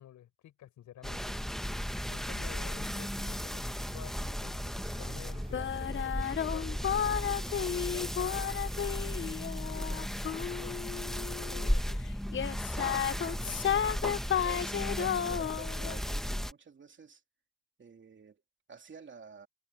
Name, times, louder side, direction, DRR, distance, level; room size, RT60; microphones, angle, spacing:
voice 1, 0.0-1.3 2.1-7.3 7.6-8.5 9.6-10.8 11.4-12.0, left 12 dB, 75° left, 5.3 m, -51 dB
sound 1, 1.0-16.5, equal, ahead, 1.1 m, -35 dB
sound 2, 3.8-9.4, right 2 dB, 20° right, 5.4 m, -48 dB
sound 3, 5.5-11.7 12.3-16.0, left 9 dB, 40° left, 0.7 m, -33 dB
voice 2, 13.0-17.2 17.8-18.4 18.7-19.5, right 6 dB, 40° right, 3.1 m, -51 dB
cardioid pair, 90°, 30 cm